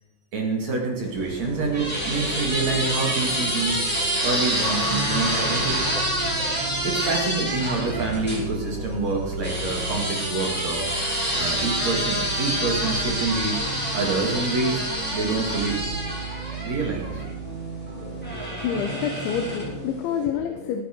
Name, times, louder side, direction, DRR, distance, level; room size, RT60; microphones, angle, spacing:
voice 1, 0.3-3.9 4.2-5.9 6.8-10.9 11.4-13.6 13.9-14.8 15.1-15.8 16.6-17.2, right 3 dB, 45° right, 0 dB, 3.0 m, -27 dB
sound 1, 1.1-16.0, left 1 dB, 35° left, 3.3 m, -38 dB
sound 2, 1.1-8.4 9.4-17.3 18.2-19.8, equal, ahead, 4.5 m, -27 dB
sound 3, 1.4-19.8, right 4 dB, 70° right, 4.7 m, -37 dB
voice 2, 18.0-20.8, left 8 dB, 85° left, 4 dB, 3.5 m, -28 dB
20.0 x 10.0 x 4.6 m, 1.1 s
omnidirectional pair, 5.2 m